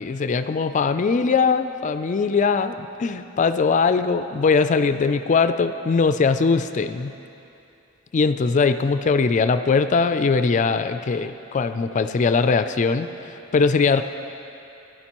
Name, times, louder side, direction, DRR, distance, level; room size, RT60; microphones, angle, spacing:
voice 1, 0.0-7.1 8.1-14.0, left 4 dB, 40° left, 10 dB, 0.3 m, -21 dB
15.5 x 10.0 x 3.0 m, 2.9 s
head